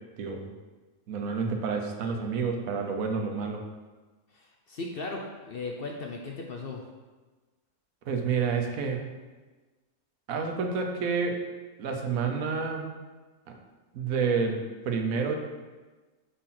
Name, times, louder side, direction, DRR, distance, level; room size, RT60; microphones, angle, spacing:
voice 1, 0.2-0.5 1.1-3.6 8.1-9.1 10.3-11.4 11.8-12.9 13.9-14.6 14.8-15.4, right 5 dB, 80° right, 3 dB, 1.2 m, -29 dB
voice 2, 4.3-6.8, left 3 dB, 60° left, 1 dB, 0.6 m, -37 dB
5.0 x 4.2 x 5.7 m, 1.3 s
omnidirectional pair, 1.4 m